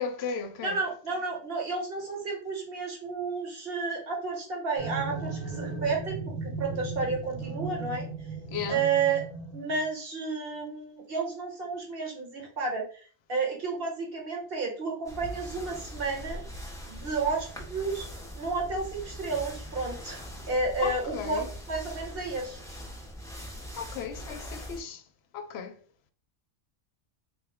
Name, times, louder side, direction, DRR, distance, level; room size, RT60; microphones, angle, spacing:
voice 1, 0.0-0.8 8.5-8.8 20.8-21.5 23.7-25.0 25.3-25.8, left 6 dB, 70° left, 0.8 m, -35 dB
voice 2, 0.6-8.1 8.7-9.2 9.5-13.0 13.3-16.4 16.9-18.1 18.3-22.6, right 4 dB, 55° right, 1.4 m, -31 dB
sound 1, 4.8-9.9, right 3 dB, 70° right, 1.9 m, -36 dB
sound 2, 15.0-24.8, equal, 5° left, 0.6 m, -42 dB
4.1 x 2.3 x 3.5 m
omnidirectional pair, 1.2 m